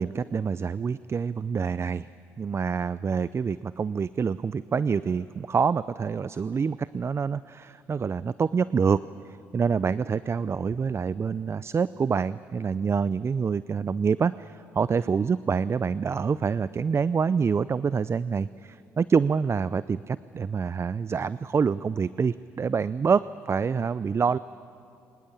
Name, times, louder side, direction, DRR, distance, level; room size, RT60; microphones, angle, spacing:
voice 1, 0.0-2.1 2.4-24.4, right 6 dB, 35° right, 17 dB, 0.5 m, -26 dB
24.5 x 19.5 x 8.6 m, 2.5 s
hypercardioid pair, 50°, 7 cm